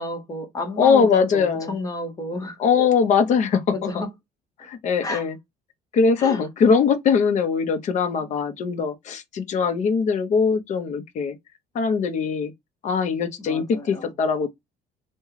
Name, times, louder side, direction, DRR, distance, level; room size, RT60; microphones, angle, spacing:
voice 1, 0.0-2.6 3.7-4.1 5.0-5.2 6.2-6.4 13.4-14.1, left 2 dB, 20° left, 0.9 m, -31 dB
voice 2, 0.8-1.8 2.6-3.6 3.9-4.0 4.6-5.4 5.9-11.4 11.7-12.5 12.8-14.5, left 6 dB, 45° left, 0.6 m, -21 dB
3.5 x 2.2 x 3.1 m
cardioid pair, 165°, 18 cm